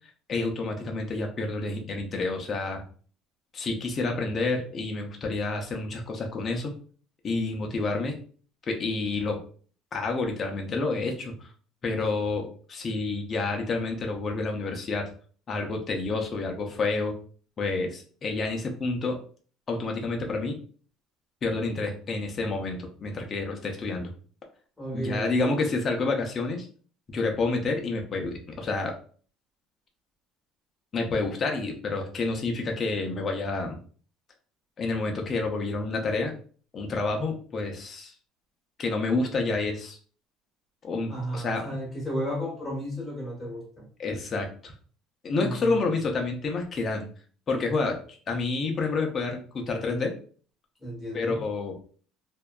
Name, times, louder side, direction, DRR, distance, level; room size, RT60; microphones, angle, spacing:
voice 1, 0.3-2.8 3.5-6.7 7.2-8.2 8.7-9.4 9.9-11.5 11.8-15.1 15.5-17.1 17.6-19.2 19.7-20.6 21.4-24.1 24.9-26.7 27.1-29.0 30.9-33.8 34.8-36.3 36.7-38.1 38.8-40.0 40.8-41.7 44.0-44.7 45.2-47.1 47.5-48.0 48.3-50.1 51.1-51.7, left 3 dB, 30° left, 2 dB, 0.5 m, -29 dB
voice 2, 24.8-25.7 41.1-43.9 45.4-45.9 50.8-51.4, equal, 10° left, -3 dB, 1.0 m, -34 dB
2.6 x 2.2 x 2.3 m, 0.43 s
cardioid pair, 145°, 0 cm